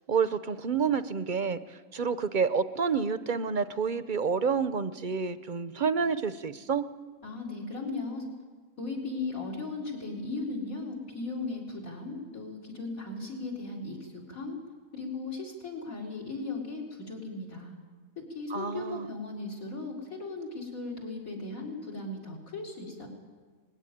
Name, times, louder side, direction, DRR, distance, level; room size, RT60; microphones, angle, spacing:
voice 1, 0.1-6.9 18.5-19.1, right 5 dB, 45° right, 12 dB, 0.7 m, -29 dB
voice 2, 7.2-8.2 8.8-14.6 14.9-17.8 18.3-23.1, left 3 dB, 75° left, 1 dB, 4.6 m, -37 dB
20.5 x 15.5 x 9.9 m, 1.5 s
omnidirectional pair, 1.5 m